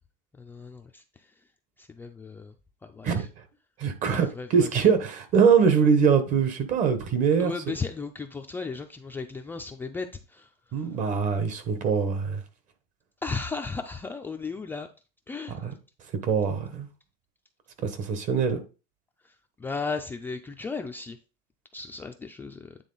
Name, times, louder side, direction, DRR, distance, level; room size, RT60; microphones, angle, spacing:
voice 1, 0.4-1.3 1.8-2.5 2.8-3.3 4.1-4.9 7.4-10.9 13.2-14.9 15.3-15.8 19.2-21.2 21.7-22.8, left 4 dB, 10° left, 0.3 m, -36 dB
voice 2, 3.8-7.7 10.7-12.4 15.5-15.7 16.2-16.9 17.8-18.6, right 6 dB, 40° right, 1.1 m, -23 dB
9.2 x 3.7 x 3.9 m
cardioid pair, 160°, 19 cm